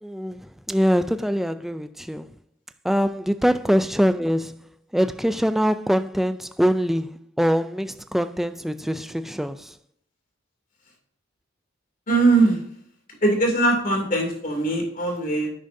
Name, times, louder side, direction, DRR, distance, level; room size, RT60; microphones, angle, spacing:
voice 1, 0.0-2.3 2.8-4.6 4.9-9.7, equal, ahead, 0.3 m, -23 dB
voice 2, 12.1-12.6 13.2-15.5, right 2 dB, 45° left, 2.6 m, -20 dB
10.5 x 9.0 x 2.7 m
head